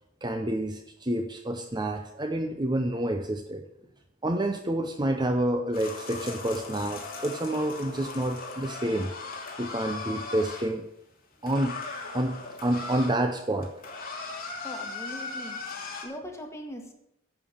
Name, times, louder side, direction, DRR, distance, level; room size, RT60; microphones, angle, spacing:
voice 1, 0.2-3.6 4.2-9.1 9.6-10.9 11.4-11.8 12.1-13.7, right 1 dB, 20° right, 0.8 m, -28 dB
sound 1, 5.7-10.7 11.4-13.2 13.5-16.0, left 3 dB, 45° left, 2.7 m, -38 dB
voice 2, 14.6-16.9, equal, 15° left, 1.8 m, -41 dB
11.0 x 7.1 x 8.7 m
head